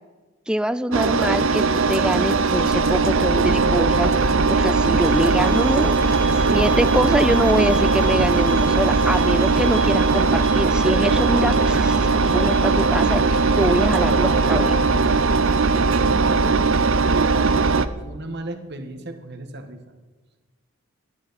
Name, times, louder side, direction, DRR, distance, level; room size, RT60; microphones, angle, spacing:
voice 1, 0.5-4.1 4.5-6.0 6.3-14.8, right 1 dB, 5° right, 14 dB, 0.3 m, -24 dB
Engine, 0.9-17.9, right 4 dB, 70° right, 0.6 m, -19 dB
sound 1, 5.0-14.6, right 1 dB, 35° left, 3.3 m, -41 dB
voice 2, 17.8-19.8, right 1 dB, 50° right, 6 dB, 1.5 m, -36 dB
18.5 x 10.5 x 4.2 m, 1.3 s
head